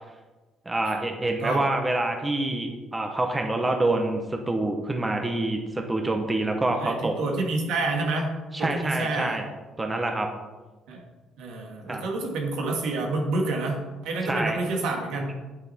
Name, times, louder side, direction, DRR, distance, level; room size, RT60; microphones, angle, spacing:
voice 1, 0.6-7.1 8.5-9.4 9.8-10.3 11.9-12.1 14.2-14.6, right 2 dB, 15° right, 3 dB, 1.2 m, -26 dB
voice 2, 6.8-8.3 8.6-9.4 10.9-11.0 11.4-15.4, right 2 dB, 80° right, 1 dB, 2.1 m, -28 dB
8.8 x 8.8 x 4.4 m, 1.2 s
cardioid pair, 115°, 0 cm